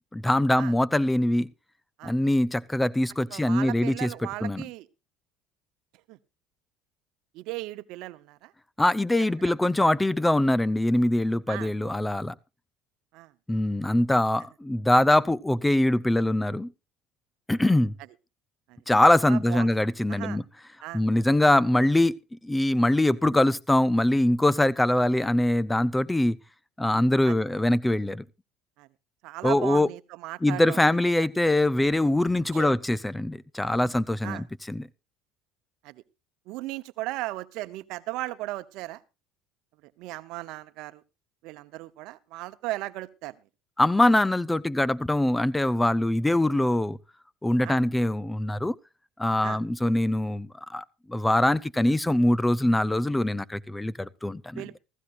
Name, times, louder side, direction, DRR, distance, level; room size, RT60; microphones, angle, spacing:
voice 1, 0.1-1.5 2.0-4.1 4.4-4.6 8.8-12.3 13.5-16.7 17.5-18.0 18.9-20.4 20.9-22.2 22.4-26.4 26.8-28.2 29.4-29.9 30.4-34.9 43.8-47.0 47.4-48.7 49.2-54.6, left 1 dB, 10° left, 0.6 m, -23 dB
voice 2, 3.3-4.9 6.1-6.2 7.3-8.5 9.4-9.5 11.5-11.7 13.1-13.3 18.7-18.8 19.2-19.7 20.1-20.4 20.8-21.0 27.2-27.3 28.8-28.9 29.2-31.3 32.5-32.7 34.2-34.4 35.8-36.0 36.5-39.0 39.8-41.0 41.4-43.3 47.6-47.8 49.4-49.6 54.5-54.8, right 18 dB, 70° right, 0.9 m, -36 dB
15.5 x 15.0 x 2.5 m
supercardioid pair, 100°, 0 cm